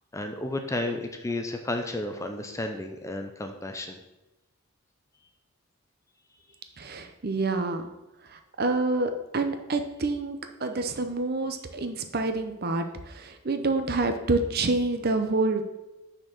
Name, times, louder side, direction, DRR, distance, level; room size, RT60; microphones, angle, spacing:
voice 1, 0.1-4.0, left 2 dB, 15° left, 5 dB, 0.5 m, -32 dB
voice 2, 6.8-7.8 8.3-15.6, right 3 dB, 45° right, 7 dB, 0.7 m, -27 dB
6.1 x 4.5 x 6.4 m, 1.0 s
head